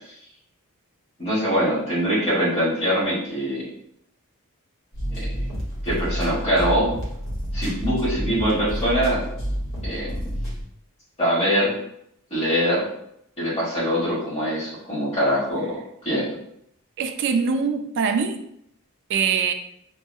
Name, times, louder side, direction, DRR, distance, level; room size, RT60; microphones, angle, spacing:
voice 1, 1.2-3.6 5.1-5.2 5.8-6.9 7.5-9.2 9.8-10.1 11.2-11.7 12.3-12.9 13.4-15.7 16.0-16.2, equal, 30° left, -7 dB, 1.4 m, -23 dB
sound 1, 4.9-10.6, equal, 60° left, 1.0 m, -29 dB
voice 2, 17.0-18.5 19.1-19.5, right 5 dB, 55° right, 7 dB, 0.3 m, -23 dB
2.9 x 2.7 x 2.3 m, 0.73 s
head